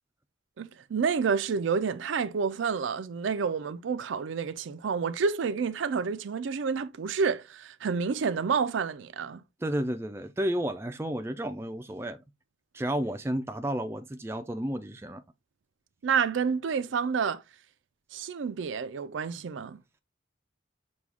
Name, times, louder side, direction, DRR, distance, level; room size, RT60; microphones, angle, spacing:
voice 1, 0.6-9.4 16.0-17.4 18.1-19.8, right 5 dB, 80° right, 0.4 m, -29 dB
voice 2, 9.6-12.2 12.7-15.2, right 1 dB, 15° right, 0.3 m, -32 dB
6.1 x 2.3 x 3.4 m
head